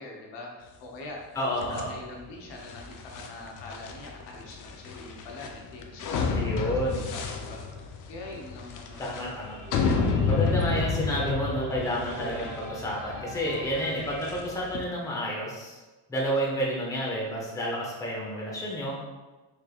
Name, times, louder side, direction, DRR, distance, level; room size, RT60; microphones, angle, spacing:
voice 1, 0.0-1.2 1.5-9.1 9.8-10.8 11.8-12.3 13.6-14.1, left 2 dB, 75° left, -1 dB, 0.9 m, -44 dB
voice 2, 1.4-1.9 6.3-7.1 9.0-9.6 10.2-15.8 16.1-19.0, equal, 10° left, -4 dB, 0.7 m, -30 dB
sound 1, 1.6-14.8, left 5 dB, 45° left, 0.5 m, -31 dB
sound 2, 9.2-14.7, right 2 dB, 25° right, 1.3 m, -43 dB
3.4 x 3.3 x 2.4 m, 1.2 s
cardioid pair, 115°, 44 cm